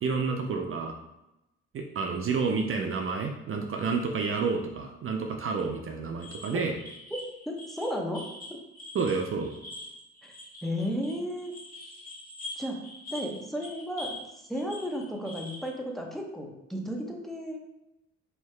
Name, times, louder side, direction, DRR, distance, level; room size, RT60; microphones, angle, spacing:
voice 1, 0.0-0.9 1.7-6.8 8.9-9.5, right 4 dB, 45° right, 4 dB, 0.5 m, -29 dB
sound 1, 6.2-14.3 14.5-15.7, left 1 dB, 30° left, 1.3 m, -44 dB
voice 2, 7.1-8.2 8.5-8.6 10.2-10.3 10.6-11.5 12.6-12.8 13.1-14.2 14.5-17.6, equal, ahead, 0 dB, 0.7 m, -33 dB
4.6 x 2.7 x 3.2 m, 0.91 s
cardioid pair, 90°, 30 cm